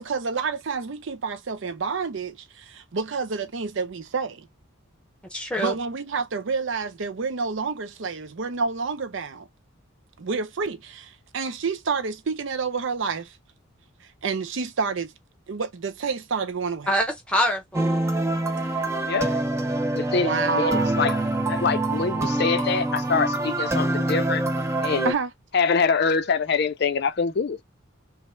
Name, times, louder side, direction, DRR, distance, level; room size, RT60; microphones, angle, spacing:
voice 1, 0.0-4.5 5.6-9.5 10.2-13.4 14.0-15.1 15.5-16.9 20.2-21.0 25.0-25.3, right 4 dB, 65° right, 0.5 m, -29 dB
voice 2, 5.3-5.7 16.9-18.0, equal, 5° left, 0.8 m, -25 dB
sound 1, 17.7-25.1, right 2 dB, 15° right, 0.4 m, -25 dB
voice 3, 19.0-19.4 19.9-24.4 24.8-25.1 25.5-27.6, left 5 dB, 50° left, 0.4 m, -25 dB
3.1 x 2.1 x 4.2 m
head